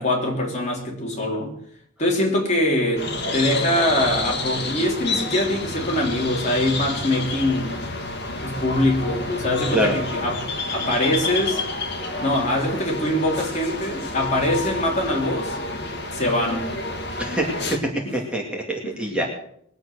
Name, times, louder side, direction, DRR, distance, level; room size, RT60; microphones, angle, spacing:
voice 1, 0.0-1.6 2.0-7.8 8.4-11.6 12.2-15.6 16.1-16.8 18.0-18.2 19.1-19.3, left 1 dB, 35° left, 3.5 m, -23 dB
sound 1, 3.0-17.8, left 2 dB, 50° left, 1.9 m, -29 dB
voice 2, 17.2-17.8 18.1-19.3, right 1 dB, 5° right, 2.3 m, -25 dB
21.5 x 8.0 x 6.4 m
head